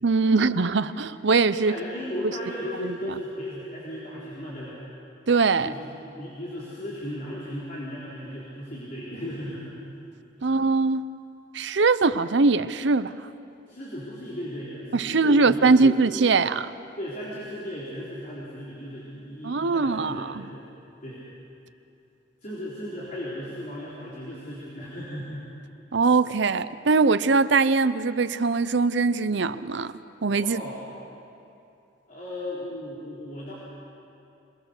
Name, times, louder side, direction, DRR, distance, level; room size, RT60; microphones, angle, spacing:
voice 1, 0.0-1.7 5.3-5.7 10.4-11.0 11.5-13.1 14.9-16.7 19.4-20.5 25.9-29.9 30.2-30.6, right 4 dB, 65° right, 13 dB, 0.7 m, -21 dB
voice 2, 1.6-4.8 5.6-5.9 6.2-9.8 10.4-10.5 13.7-16.0 17.0-20.7 21.0-21.2 22.4-25.5 30.3-30.8 32.1-33.5, equal, 45° left, -8 dB, 4.0 m, -36 dB
27.0 x 19.5 x 6.6 m, 2.7 s
head